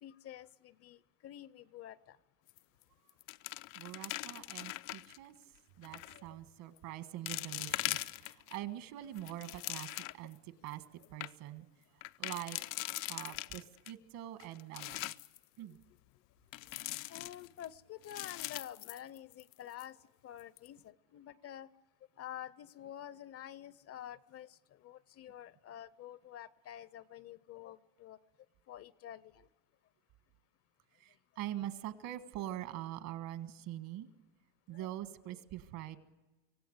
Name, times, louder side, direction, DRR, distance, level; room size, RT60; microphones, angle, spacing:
voice 1, 0.0-2.2 6.1-6.4 17.1-20.0 20.2-21.7 22.2-28.2 28.7-29.5 34.7-34.9, left 11 dB, 40° left, 19 dB, 0.6 m, -49 dB
sound 1, 2.5-2.8 3.1-5.2 5.8-6.2 6.8-6.9 7.3-8.6 9.0-10.3 10.7-10.8 11.0-11.3 12.0-13.9 14.4-15.4 16.5-17.7 18.0-19.5 19.8-19.9 20.4-20.7, left 19 dB, 85° left, 0.7 m, -41 dB
voice 2, 3.7-12.6 13.1-15.1 15.6-15.8 31.0-34.1 34.7-36.0, right 13 dB, 65° right, 10 dB, 1.7 m, -44 dB
25.5 x 17.0 x 8.0 m, 1.2 s
supercardioid pair, 125°, 38 cm